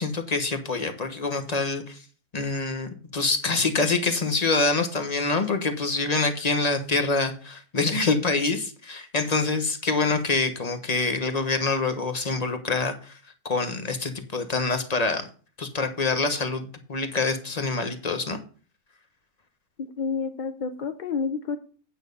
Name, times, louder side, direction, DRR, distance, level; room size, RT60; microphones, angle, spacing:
voice 1, 0.0-2.0 2.3-13.2 13.4-15.3 15.6-18.4, left 3 dB, 30° left, 7 dB, 1.1 m, -26 dB
voice 2, 19.8-21.6, left 5 dB, 50° left, 8 dB, 0.5 m, -29 dB
9.0 x 6.4 x 5.3 m, 0.39 s
omnidirectional pair, 1.6 m